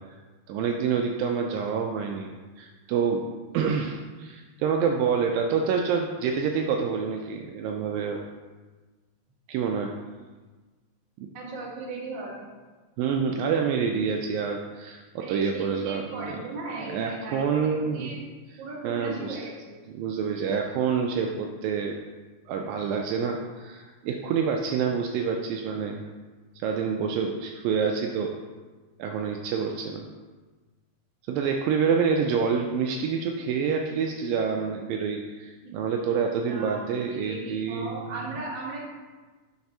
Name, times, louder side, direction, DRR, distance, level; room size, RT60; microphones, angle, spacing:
voice 1, 0.5-2.3 2.6-3.3 3.5-8.2 9.5-9.9 11.2-11.3 13.0-16.3 16.8-18.2 18.8-19.4 19.9-22.0 22.5-26.1 26.6-28.3 29.0-30.1 31.3-38.3, right 6 dB, 80° right, 2 dB, 2.1 m, -27 dB
voice 2, 11.3-12.5 15.2-18.2 18.6-19.7 35.6-35.7 36.1-38.9, right 2 dB, 60° right, -4 dB, 1.2 m, -37 dB
5.9 x 4.2 x 5.4 m, 1.3 s
omnidirectional pair, 4.4 m